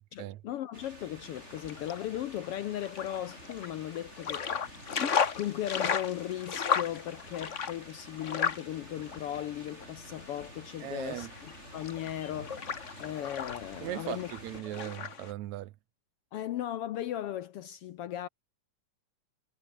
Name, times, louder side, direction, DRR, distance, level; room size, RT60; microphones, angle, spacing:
voice 1, 0.1-4.5 5.3-12.7 13.0-14.3 16.3-18.3, left 12 dB, 70° left, 1.4 m, -37 dB
sound 1, 0.7-14.6, right 2 dB, 20° right, 5.4 m, -51 dB
sound 2, 1.3-15.3, left 6 dB, 55° left, 0.8 m, -35 dB
voice 2, 10.8-11.3 13.8-15.7, right 14 dB, 80° right, 2.2 m, -38 dB
omnidirectional pair, 3.3 m